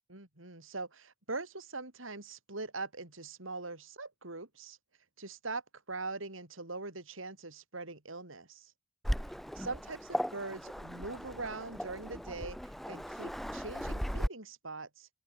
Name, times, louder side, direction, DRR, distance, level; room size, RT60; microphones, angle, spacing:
voice 1, 0.1-4.8 5.2-5.6 5.9-8.7 9.5-15.1, right 3 dB, 80° right, 4.7 m, -42 dB
Waves surf, 9.0-14.3, equal, ahead, 1.2 m, -37 dB
open air
head